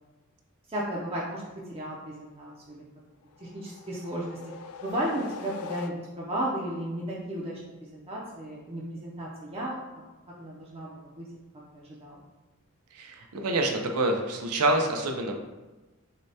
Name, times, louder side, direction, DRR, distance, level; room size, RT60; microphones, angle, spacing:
voice 1, 0.7-1.4 1.7-2.8 3.4-4.4 4.8-7.6 7.9-9.8 10.4-10.9 11.2-11.3 11.7-12.2, right 1 dB, 25° right, -5 dB, 0.5 m, -34 dB
sound 1, 3.3-6.4, left 6 dB, 80° left, 0.3 m, -42 dB
voice 2, 12.9-15.3, right 2 dB, 90° right, 3 dB, 0.6 m, -27 dB
6.3 x 2.2 x 2.8 m, 1.1 s
head